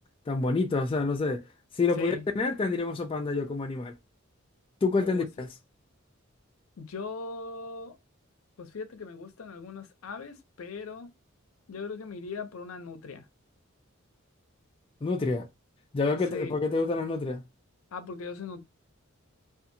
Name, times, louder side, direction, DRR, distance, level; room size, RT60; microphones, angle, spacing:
voice 1, 0.3-1.5 1.7-3.9 4.8-5.5 15.0-15.5 15.9-17.4, left 3 dB, 25° left, 0.3 m, -28 dB
voice 2, 6.8-8.0 8.6-11.1 11.7-13.3 16.3-16.5 17.9-18.6, left 4 dB, 80° left, 0.5 m, -39 dB
2.6 x 2.4 x 2.6 m
head